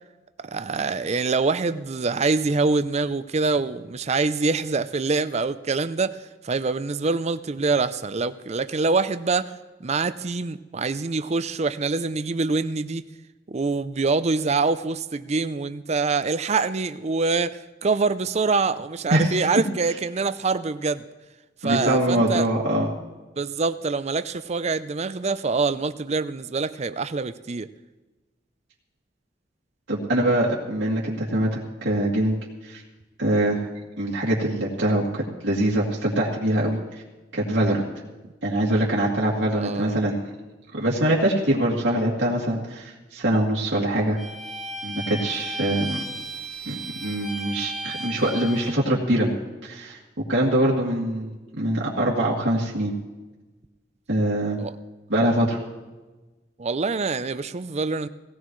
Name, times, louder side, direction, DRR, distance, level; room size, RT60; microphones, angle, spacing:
voice 1, 0.4-9.5 9.8-13.0 13.5-21.0 21.6-22.5 23.4-27.7 39.5-40.0 54.6-54.8 56.6-58.1, right 4 dB, 35° right, 13 dB, 0.5 m, -25 dB
voice 2, 21.6-22.9 29.9-32.4 32.6-32.8 33.2-33.7 34.0-36.8 37.3-37.8 38.4-40.2 40.7-44.2 44.8-46.0 46.7-50.0 50.3-52.9 54.1-54.6 55.1-55.6, right 1 dB, 75° right, -5 dB, 2.3 m, -23 dB
Bowed string instrument, 44.2-48.8, right 2 dB, ahead, 1.4 m, -34 dB
18.0 x 17.5 x 3.2 m, 1.2 s
head